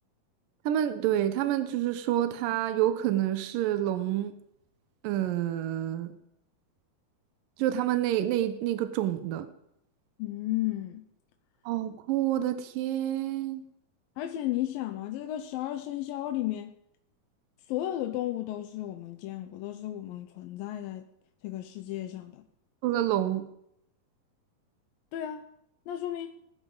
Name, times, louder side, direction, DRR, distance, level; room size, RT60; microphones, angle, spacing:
voice 1, 0.7-4.4 5.0-6.1 7.6-9.5 11.7-13.6 22.8-23.5, right 12 dB, 70° right, 2.5 m, -28 dB
voice 2, 10.2-11.0 14.2-16.7 17.7-21.1 21.4-22.4 25.1-25.5 25.9-26.4, left 13 dB, 80° left, 2.4 m, -34 dB
19.5 x 13.0 x 4.0 m
omnidirectional pair, 4.4 m